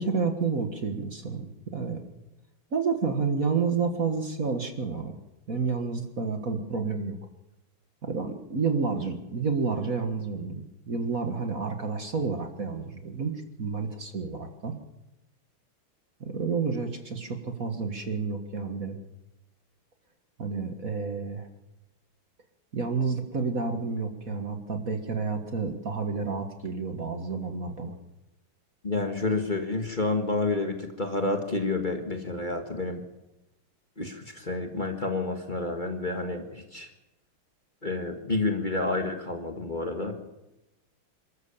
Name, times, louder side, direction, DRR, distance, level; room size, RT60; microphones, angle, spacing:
voice 1, 0.0-2.0 2.7-5.1 5.5-7.1 8.0-13.3 13.6-14.7 16.2-19.0 20.4-21.5 22.7-27.9, right 4 dB, 45° right, 6 dB, 1.9 m, -30 dB
voice 2, 28.8-33.0 34.0-36.9 37.8-40.2, left 2 dB, 25° left, 4 dB, 2.0 m, -29 dB
28.0 x 13.5 x 7.3 m, 0.99 s
omnidirectional pair, 2.3 m